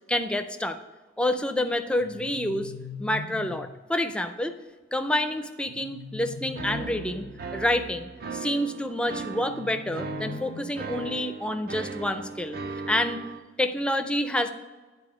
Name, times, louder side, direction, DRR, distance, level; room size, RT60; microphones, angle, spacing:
voice 1, 0.1-0.8 1.2-2.7 3.0-4.5 4.9-7.3 7.5-12.6 12.9-13.2 13.6-14.5, left 1 dB, 5° left, 8 dB, 0.4 m, -28 dB
sound 1, 2.0-3.8 5.6-7.5 9.4-11.3, left 4 dB, 90° left, 0.5 m, -41 dB
sound 2, 6.6-13.4, right 4 dB, 50° right, 0.5 m, -38 dB
9.7 x 4.2 x 4.9 m, 1.3 s
head